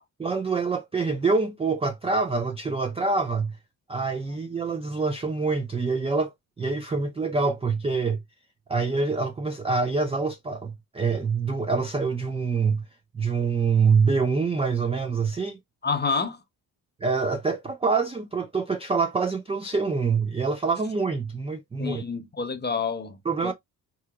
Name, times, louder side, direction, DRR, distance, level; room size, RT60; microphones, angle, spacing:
voice 1, 0.2-3.6 3.9-8.2 8.7-12.8 13.1-15.6 17.0-22.0 23.3-23.5, right 4 dB, 15° right, 0.3 m, -25 dB
voice 2, 15.8-16.4 21.8-23.2 23.4-23.5, left 5 dB, 20° left, 0.7 m, -28 dB
3.5 x 2.8 x 2.2 m
supercardioid pair, 55°, 49 cm